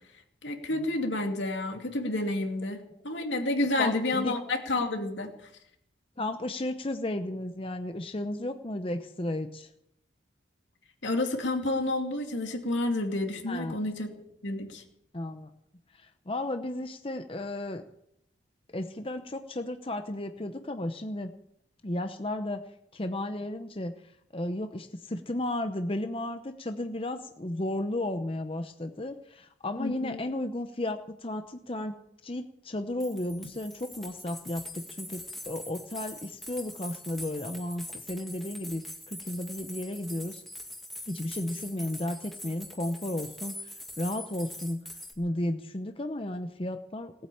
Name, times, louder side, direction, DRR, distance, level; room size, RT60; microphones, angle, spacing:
voice 1, 0.4-5.5 11.0-14.1 14.4-14.8 29.8-30.2, left 2 dB, 80° left, 4 dB, 2.5 m, -30 dB
voice 2, 3.8-4.3 6.2-9.7 13.5-13.8 15.1-15.5 15.9-17.8 18.7-21.3 21.8-22.6 22.9-23.9 24.3-31.9 32.2-40.4 41.1-44.8 45.2-47.3, left 1 dB, 30° left, 7 dB, 0.8 m, -34 dB
sound 1, 32.7-32.8 33.0-45.1, left 1 dB, ahead, 1.9 m, -43 dB
18.5 x 8.9 x 8.6 m, 0.76 s
head